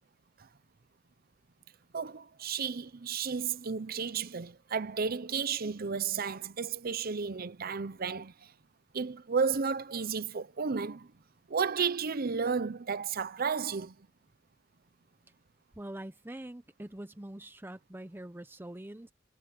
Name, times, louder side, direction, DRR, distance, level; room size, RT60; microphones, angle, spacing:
voice 1, 1.9-8.5 8.9-11.1 11.5-14.0, right 5 dB, 50° right, 0.7 m, -33 dB
voice 2, 15.7-19.1, right 1 dB, 10° right, 0.7 m, -44 dB
head